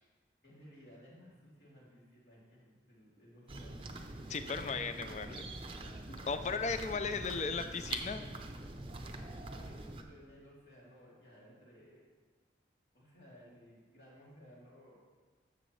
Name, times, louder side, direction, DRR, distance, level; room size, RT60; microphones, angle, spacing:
voice 1, 0.4-3.9 4.3-5.4 9.3-12.1 12.9-15.0, equal, 70° left, -6 dB, 2.9 m, -57 dB
sound 1, 3.5-10.0, right 2 dB, 30° right, 0.6 m, -44 dB
voice 2, 4.3-5.4 6.1-8.2, left 4 dB, 40° left, 10 dB, 0.4 m, -36 dB
12.0 x 7.0 x 3.2 m, 1.4 s
head